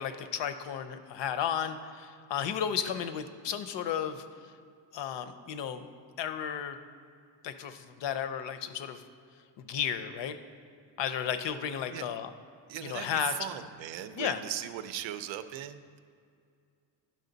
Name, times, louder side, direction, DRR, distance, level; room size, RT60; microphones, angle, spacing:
voice 1, 0.0-4.2 4.9-5.9 6.2-6.8 7.4-9.0 9.6-10.4 11.0-12.3 12.8-13.5 14.2-14.4, left 8 dB, 70° left, 10 dB, 0.7 m, -33 dB
voice 2, 12.7-16.0, right 11 dB, 90° right, 12 dB, 0.6 m, -38 dB
10.5 x 6.3 x 3.9 m, 2.3 s
cardioid pair, 165°, 44 cm